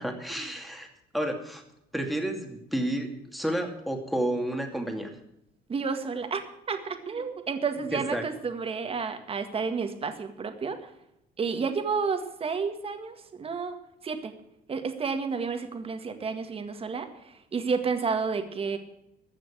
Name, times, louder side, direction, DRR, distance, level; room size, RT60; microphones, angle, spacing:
voice 1, 0.0-1.6 1.9-5.2 7.9-8.2, right 1 dB, ahead, 3 dB, 2.4 m, -31 dB
voice 2, 5.7-10.8 11.4-13.8 14.0-14.3 14.7-18.8, right 5 dB, 35° right, 7 dB, 1.8 m, -31 dB
14.5 x 6.4 x 9.8 m, 0.83 s
cardioid pair, 110°, 17 cm